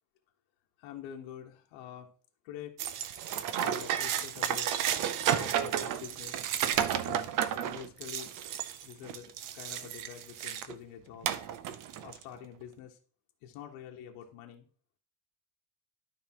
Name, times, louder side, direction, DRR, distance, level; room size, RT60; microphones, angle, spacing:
voice 1, 0.8-2.1 2.4-2.8 3.5-4.7 5.2-6.4 7.0-7.3 7.6-8.3 8.8-11.3 12.0-13.0 13.4-14.7, left 9 dB, 90° left, 1 dB, 1.4 m, -46 dB
sound 1, 2.8-10.7 11.2-12.2, right 10 dB, 45° right, 0.6 m, -32 dB
12.0 x 5.1 x 3.0 m, 0.41 s
cardioid pair, 170°, 46 cm